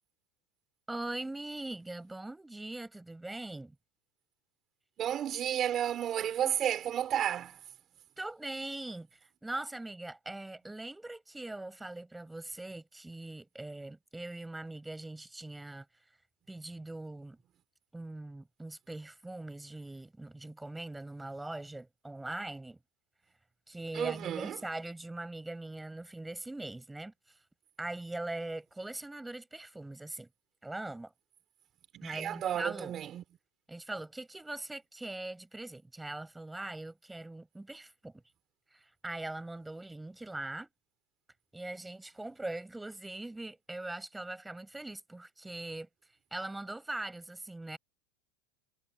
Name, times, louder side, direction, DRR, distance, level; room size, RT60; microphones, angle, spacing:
voice 1, 0.9-3.7 8.2-15.9 16.5-17.4 17.9-22.8 23.7-27.1 27.8-30.3 30.6-31.1 32.0-32.9 33.7-38.1 38.7-40.7 41.5-45.9 46.3-47.8, right 2 dB, 5° right, 6.4 m, -41 dB
voice 2, 5.0-7.6 23.9-24.6 31.9-33.2, right 10 dB, 25° right, 5.6 m, -32 dB
supercardioid pair, 175°, 0 cm